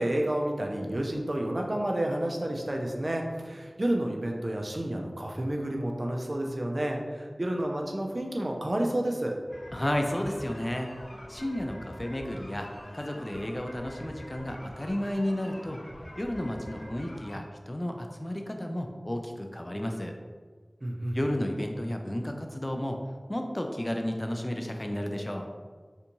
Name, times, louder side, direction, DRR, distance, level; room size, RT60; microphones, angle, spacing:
voice 1, 0.0-9.4 20.8-21.2, right 1 dB, 50° right, 1 dB, 0.4 m, -30 dB
sound 1, 9.5-17.4, left 1 dB, 85° left, 0.5 m, -45 dB
voice 2, 9.7-10.9 11.3-12.7 12.9-15.8 16.2-20.1 21.1-23.0 23.3-25.5, left 1 dB, 25° left, 3 dB, 0.3 m, -32 dB
3.4 x 2.6 x 2.9 m, 1.5 s
wide cardioid pair, 40°, 0 cm